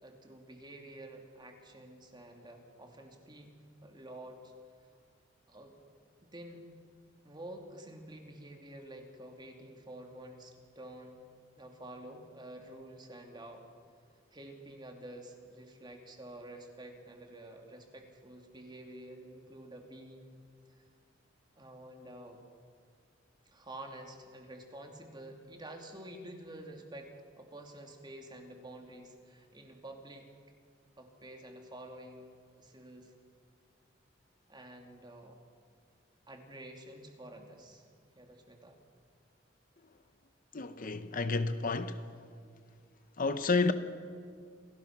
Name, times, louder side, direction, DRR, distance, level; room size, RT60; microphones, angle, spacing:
voice 1, 0.0-3.5 3.8-4.5 5.5-5.8 6.2-6.6 7.2-11.2 11.6-13.6 14.3-20.4 20.8-20.9 21.6-22.4 23.5-30.3 31.0-32.3 32.6-33.1 34.5-35.4 36.3-37.8 38.1-38.8, right 1 dB, 25° right, 2.8 m, -49 dB
voice 2, 40.5-42.0 43.2-43.7, left 3 dB, 45° left, 0.9 m, -30 dB
28.0 x 18.0 x 6.1 m
head